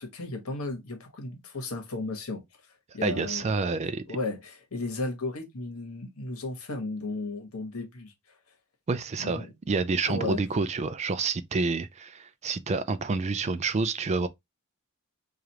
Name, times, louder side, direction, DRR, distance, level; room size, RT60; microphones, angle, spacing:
voice 1, 0.0-2.4 2.9-3.5 4.1-8.1 9.2-9.5 10.1-10.4, left 2 dB, 70° left, 1.2 m, -34 dB
voice 2, 3.0-4.0 8.9-14.3, right 4 dB, 30° right, 0.3 m, -28 dB
4.8 x 2.5 x 2.8 m
head